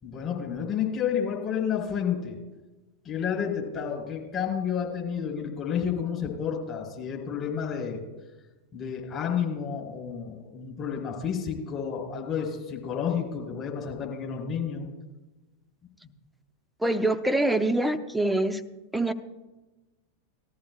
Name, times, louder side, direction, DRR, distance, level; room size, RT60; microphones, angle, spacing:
voice 1, 0.0-2.4 3.0-8.0 8.7-14.9, left 7 dB, 25° left, -1 dB, 3.4 m, -30 dB
voice 2, 16.8-18.6 18.9-19.1, right 1 dB, 5° right, 10 dB, 0.7 m, -24 dB
19.0 x 13.5 x 2.2 m, 1.1 s
figure-of-eight pair, 90°, 0 cm